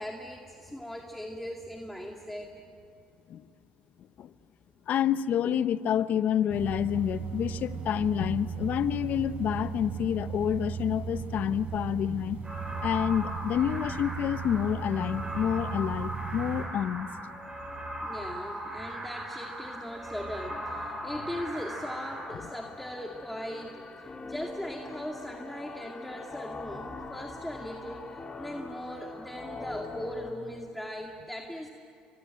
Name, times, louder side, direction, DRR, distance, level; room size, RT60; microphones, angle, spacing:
voice 1, 0.0-2.5 18.0-31.7, equal, 5° left, 1 dB, 2.2 m, -39 dB
voice 2, 4.9-12.4 12.8-17.1, left 9 dB, 55° left, 14 dB, 0.9 m, -28 dB
sound 1, 6.5-16.7, right 7 dB, 60° right, 5.6 m, -37 dB
sound 2, 12.4-22.3, right 1 dB, 25° right, 7.5 m, -38 dB
sound 3, 20.4-30.3, left 3 dB, 30° left, 3.6 m, -43 dB
30.0 x 25.0 x 7.7 m, 2.6 s
supercardioid pair, 80°, 3 cm